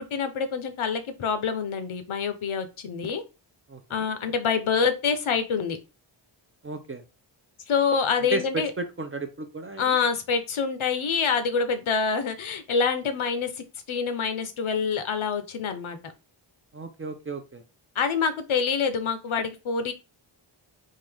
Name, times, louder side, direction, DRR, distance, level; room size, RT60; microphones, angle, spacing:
voice 1, 0.0-3.2 3.9-5.8 7.7-8.7 9.8-16.0 18.0-19.9, left 5 dB, 70° left, 9 dB, 0.8 m, -26 dB
voice 2, 3.7-4.1 6.6-7.0 8.3-9.8 16.7-17.6, right 3 dB, 25° right, 6 dB, 0.5 m, -33 dB
3.7 x 2.6 x 3.4 m, 0.29 s
wide cardioid pair, 90°, 50 cm